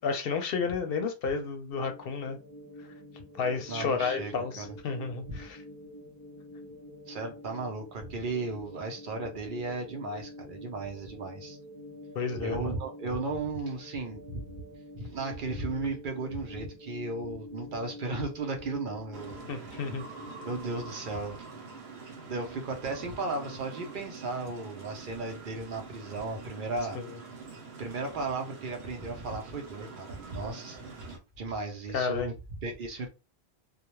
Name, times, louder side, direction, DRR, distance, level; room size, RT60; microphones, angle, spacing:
voice 1, 0.0-2.4 3.4-5.6 12.1-12.7 19.5-20.0 26.9-27.0 31.9-32.3, left 5 dB, 70° left, 0.7 m, -31 dB
sound 1, 1.7-20.9, left 1 dB, 25° left, 0.5 m, -47 dB
voice 2, 3.7-4.8 5.3-5.4 7.1-11.6 12.3-14.4 15.0-19.8 20.4-21.5 22.3-27.0 27.8-32.3 32.6-33.1, right 3 dB, 60° right, 0.7 m, -35 dB
sound 2, 19.1-31.2, right 4 dB, 85° right, 1.0 m, -45 dB
2.3 x 2.1 x 3.0 m
omnidirectional pair, 1.1 m